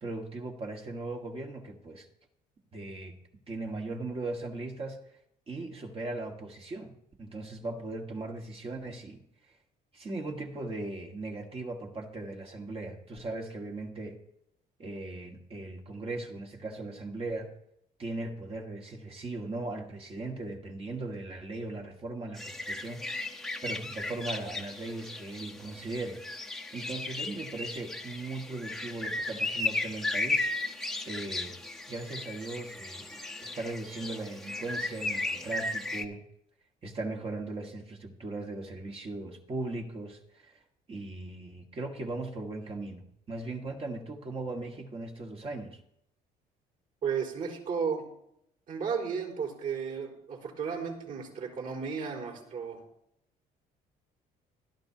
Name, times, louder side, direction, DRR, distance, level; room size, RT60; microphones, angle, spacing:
voice 1, 0.0-2.1 2.7-3.1 3.5-5.0 5.5-9.2 9.9-14.2 14.8-17.5 18.0-23.0 23.6-26.2 26.7-30.7 31.0-31.5 31.9-33.1 33.4-36.2 36.8-40.6 40.9-45.8, right 2 dB, 35° right, 1 dB, 1.7 m, -38 dB
sound 1, 22.4-36.1, left 2 dB, 5° left, 1.1 m, -35 dB
voice 2, 47.0-48.1 48.7-52.8, right 6 dB, 55° right, -3 dB, 4.6 m, -34 dB
16.5 x 12.5 x 2.9 m, 0.77 s
cardioid pair, 110°, 17 cm